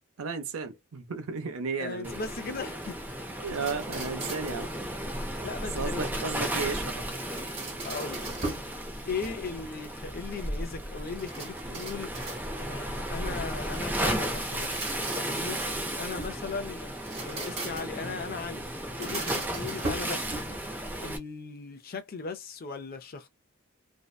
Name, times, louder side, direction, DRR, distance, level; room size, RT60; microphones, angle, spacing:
voice 1, 0.2-2.2 3.4-4.7 5.7-7.1, right 4 dB, 85° right, 0.6 m, -34 dB
voice 2, 1.8-3.0 4.2-4.4 5.4-6.0 7.8-8.2 9.0-12.1 12.6-14.8 15.2-15.6 16.0-16.9 17.2-18.7 19.0-20.3 21.0-23.3, left 4 dB, 45° left, 0.5 m, -37 dB
Waves surf, 2.0-21.2, right 1 dB, 10° right, 0.5 m, -34 dB
sound 1, 3.5-4.7 7.1-8.7 9.1-9.7 11.2-12.8 14.4-16.4 16.9-18.1 18.8-20.7, right 3 dB, 30° right, 1.0 m, -39 dB
2.7 x 2.1 x 2.3 m
head